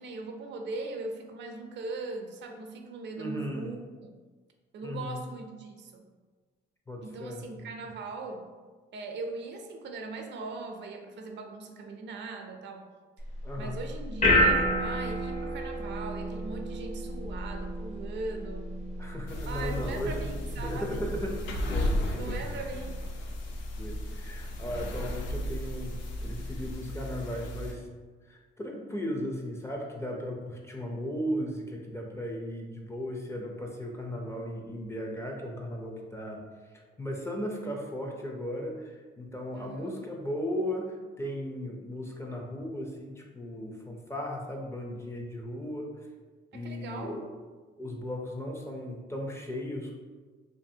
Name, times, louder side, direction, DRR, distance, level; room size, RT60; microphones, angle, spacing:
voice 1, 0.0-3.8 4.7-6.0 7.0-8.5 8.9-12.9 13.6-18.8 19.5-21.1 22.1-23.0 39.5-40.0 46.5-47.2, right 3 dB, 65° right, 4 dB, 0.4 m, -40 dB
voice 2, 3.2-3.7 4.8-5.2 6.9-7.7 13.4-13.8 19.0-20.3 20.6-21.4 21.7-22.4 23.8-27.9 28.3-36.4 36.7-46.1 46.5-47.3 47.8-49.9, equal, 15° left, 0 dB, 0.5 m, -36 dB
sound 1, 13.2-26.7, equal, 35° left, 0.8 m, -32 dB
sound 2, 19.3-27.7, equal, 70° left, 0.4 m, -35 dB
2.6 x 2.6 x 2.6 m, 1.4 s
cardioid pair, 90°, 20 cm